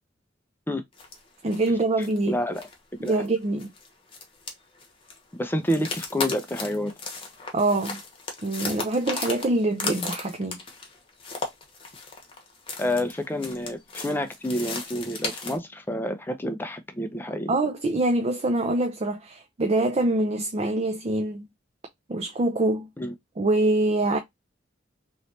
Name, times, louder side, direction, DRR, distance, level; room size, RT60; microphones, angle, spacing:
sound 1, 1.0-1.2 1.5-1.7 2.0-2.3 2.5-2.7 3.1-5.2 5.6-15.6, left 4 dB, 30° left, 1.0 m, -36 dB
voice 1, 1.4-2.4 3.0-3.7 7.5-8.0 8.4-10.6 17.5-21.5 22.1-22.9 23.4-24.2, right 2 dB, 35° right, 0.5 m, -24 dB
voice 2, 2.3-2.6 3.0-3.3 5.3-6.9 12.8-17.5 23.0-23.1, left 1 dB, 10° left, 0.6 m, -28 dB
3.1 x 3.1 x 2.7 m
head